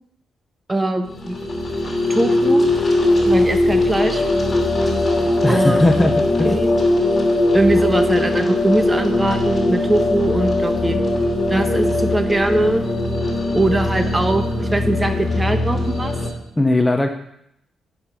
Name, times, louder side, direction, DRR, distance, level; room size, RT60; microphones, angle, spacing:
voice 1, 0.7-1.4 2.1-2.7 3.2-4.2 5.5-5.9 6.4-6.7 7.5-11.0 11.5-12.8 13.5-16.1, right 1 dB, 20° right, 7 dB, 1.1 m, -21 dB
sound 1, 1.0-16.3, left 2 dB, 35° left, 2.9 m, -20 dB
voice 2, 5.4-6.5 16.6-17.1, left 1 dB, 10° left, 6 dB, 0.8 m, -18 dB
10.5 x 5.4 x 6.2 m, 0.75 s
cardioid pair, 80°, 0 cm